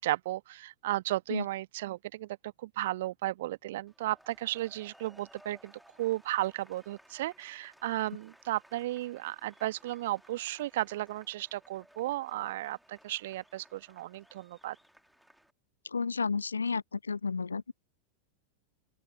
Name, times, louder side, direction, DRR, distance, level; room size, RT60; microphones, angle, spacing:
voice 1, 0.0-5.7 6.0-14.8, right 16 dB, 55° right, 0.5 m, -34 dB
sound 1, 3.9-15.5, equal, ahead, 2.9 m, -60 dB
voice 2, 15.8-17.7, left 5 dB, 75° left, 0.6 m, -32 dB
open air
figure-of-eight pair, 90°, 0 cm